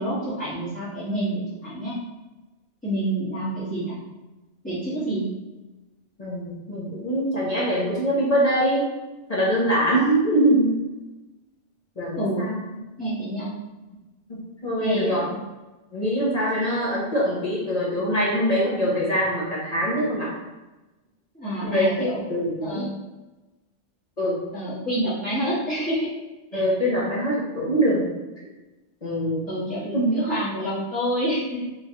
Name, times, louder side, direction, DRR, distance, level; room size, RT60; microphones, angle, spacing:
voice 1, 0.0-2.0 2.8-4.0 4.6-5.2 12.1-12.5 13.0-13.5 14.8-15.4 21.3-22.2 22.6-22.9 24.5-26.1 26.5-26.6 29.5-31.6, right 1 dB, 10° left, -14 dB, 1.1 m, -27 dB
voice 2, 6.2-8.9 9.3-10.8 12.0-12.6 14.3-15.2 15.9-20.3 21.6-22.9 24.2-24.4 26.5-28.1 29.0-29.4 29.9-30.1, equal, 40° left, -7 dB, 0.9 m, -23 dB
3.8 x 3.2 x 2.8 m, 1.1 s
omnidirectional pair, 1.2 m